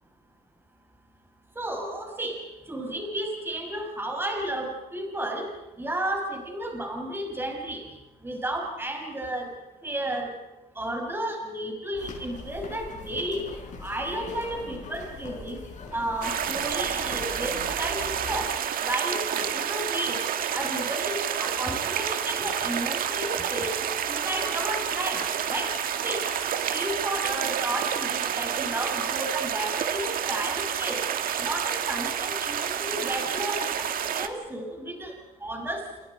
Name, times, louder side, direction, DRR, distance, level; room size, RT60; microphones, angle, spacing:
voice 1, 1.6-2.4 2.7-5.5 5.8-7.8 8.2-9.5 9.8-10.3 10.8-13.5 13.8-15.6 15.9-18.5 18.8-20.2 20.5-23.7 24.0-25.2 25.5-25.7 26.0-26.2 26.7-31.0 31.4-35.1 35.4-35.8, right 1 dB, 15° right, 2 dB, 6.1 m, -32 dB
sound 1, 12.0-18.6, left 4 dB, 45° left, 7.1 m, -41 dB
sound 2, 16.2-34.3, right 9 dB, 55° right, 1.8 m, -29 dB
29.0 x 28.0 x 5.3 m, 1.0 s
cardioid pair, 110°, 17 cm